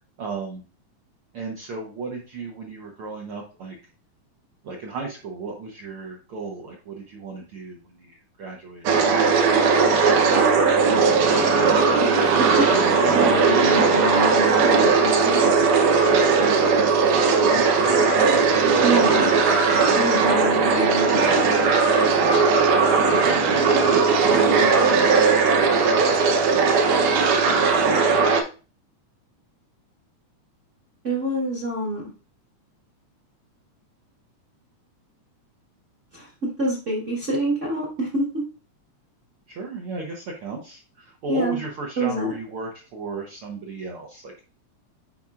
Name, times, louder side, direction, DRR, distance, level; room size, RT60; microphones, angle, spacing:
voice 1, 0.2-0.6 1.3-3.8 4.6-9.2 17.5-19.4 23.1-27.3 39.5-44.4, right 4 dB, 65° right, 0 dB, 1.4 m, -34 dB
sound 1, 8.9-28.4, right 4 dB, 85° right, 2.4 m, -18 dB
voice 2, 12.0-12.7 13.0-15.5 18.8-19.2 19.9-21.5 31.0-32.1 36.1-38.4 41.3-41.6 42.0-42.3, right 1 dB, 35° right, -3 dB, 1.1 m, -27 dB
10.0 x 4.3 x 2.4 m, 0.35 s
omnidirectional pair, 3.5 m